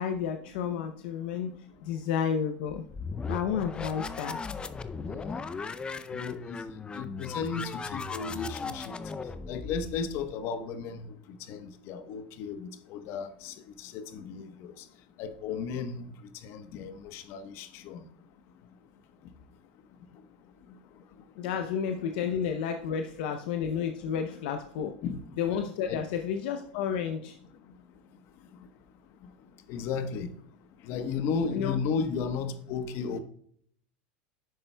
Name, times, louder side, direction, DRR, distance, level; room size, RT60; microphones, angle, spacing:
voice 1, 0.0-1.6 1.8-2.8 3.3-4.4 21.4-25.0 25.4-27.4 31.5-31.8, left 7 dB, 70° left, 0.7 m, -31 dB
sound 1, 2.7-10.3, left 4 dB, 20° left, 0.5 m, -37 dB
voice 2, 5.0-5.4 6.1-6.6 6.9-8.9 9.5-11.1 11.5-14.7 15.2-16.0 16.4-18.0 25.0-25.2 25.9-26.0 29.7-30.3 30.8-33.2, left 5 dB, 55° left, 1.1 m, -34 dB
10.5 x 7.6 x 2.3 m
supercardioid pair, 115°, 5 cm